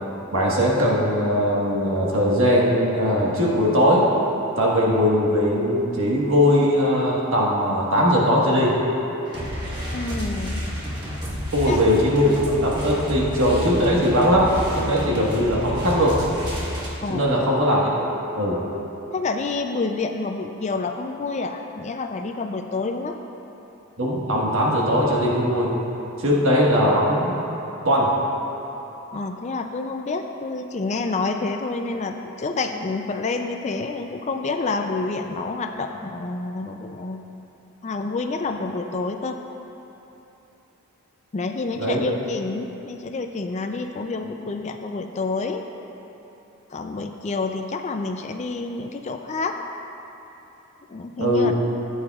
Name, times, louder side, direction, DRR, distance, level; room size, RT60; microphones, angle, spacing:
voice 1, 0.3-4.0 4.6-8.7 11.5-16.2 17.1-18.1 18.3-18.6 24.0-25.8 26.2-27.3 27.8-28.1 41.8-42.0 51.2-51.5, equal, 70° right, -4 dB, 1.4 m, -20 dB
sound 1, 9.2-16.9, equal, 20° right, 1.4 m, -30 dB
voice 2, 9.9-10.7 11.7-11.8 17.0-17.3 19.1-23.2 29.1-37.3 37.8-39.4 41.3-45.6 46.7-49.6 50.9-51.5, left 3 dB, 30° left, 5 dB, 0.4 m, -28 dB
14.5 x 8.6 x 2.4 m, 3.0 s
head